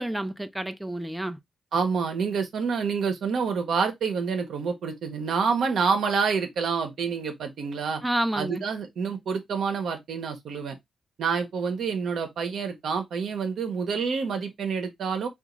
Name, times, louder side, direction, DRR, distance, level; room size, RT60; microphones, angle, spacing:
voice 1, 0.0-1.4 8.0-8.6, right 1 dB, 10° right, 0.4 m, -29 dB
voice 2, 1.7-8.0 8.3-10.8 11.2-15.3, right 5 dB, 75° right, 0.8 m, -27 dB
2.9 x 2.4 x 3.7 m
supercardioid pair, 50°, 0 cm